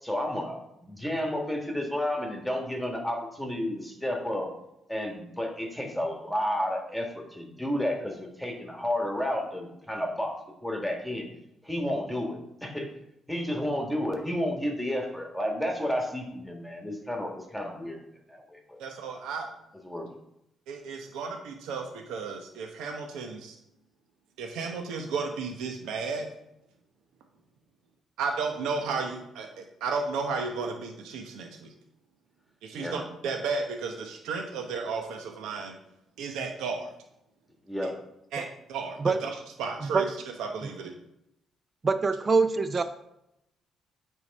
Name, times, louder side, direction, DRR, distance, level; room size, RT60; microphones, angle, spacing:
voice 1, 0.0-4.5 4.9-10.3 10.6-11.3 11.6-12.9 13.3-18.0 18.3-18.8 19.8-20.1 32.7-33.0 37.7-37.9, left 1 dB, 5° left, 1 dB, 1.5 m, -31 dB
voice 2, 18.8-19.5 20.7-23.6 24.4-26.3 28.2-31.7 32.6-35.7 36.2-36.9 38.3-40.9, right 4 dB, 90° right, 3 dB, 0.9 m, -33 dB
voice 3, 41.8-42.8, right 4 dB, 30° right, 10 dB, 0.5 m, -24 dB
8.2 x 3.8 x 5.2 m, 0.83 s
cardioid pair, 90°, 0 cm